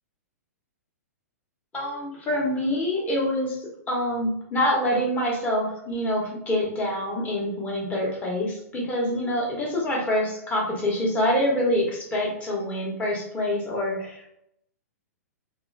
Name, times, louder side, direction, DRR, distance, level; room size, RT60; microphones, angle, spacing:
voice 1, 1.7-14.2, left 1 dB, 15° left, -3 dB, 1.1 m, -26 dB
3.1 x 2.9 x 2.5 m, 0.78 s
figure-of-eight pair, 110°, 9 cm